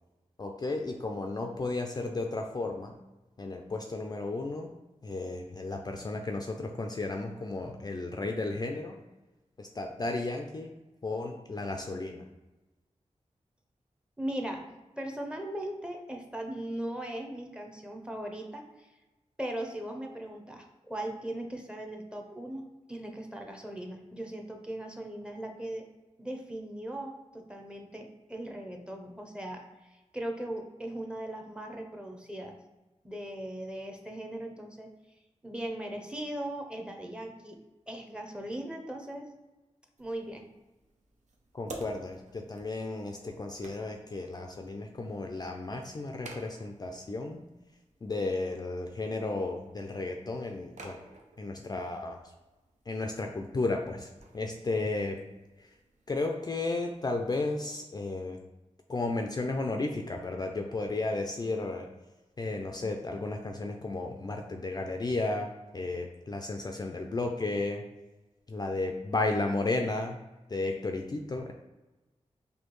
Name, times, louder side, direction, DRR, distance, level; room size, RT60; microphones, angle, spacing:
voice 1, 0.4-2.9 3.4-4.7 5.0-9.0 9.6-10.7 11.0-12.3 41.5-47.4 48.0-51.0 51.4-52.3 52.9-55.2 55.6-55.7 56.1-58.4 58.9-61.9 62.4-67.8 68.5-70.2 70.5-71.5, left 2 dB, 35° left, 3 dB, 0.4 m, -33 dB
voice 2, 14.2-14.7 15.0-18.9 19.4-22.6 22.9-25.8 26.2-32.6 33.0-34.9 35.4-37.6 37.9-39.3 40.0-40.5, right 1 dB, 10° right, 2 dB, 0.7 m, -38 dB
sound 1, 40.0-57.6, right 2 dB, 75° right, 0.6 m, -54 dB
4.3 x 2.7 x 3.0 m, 1.1 s
wide cardioid pair, 70°, 12 cm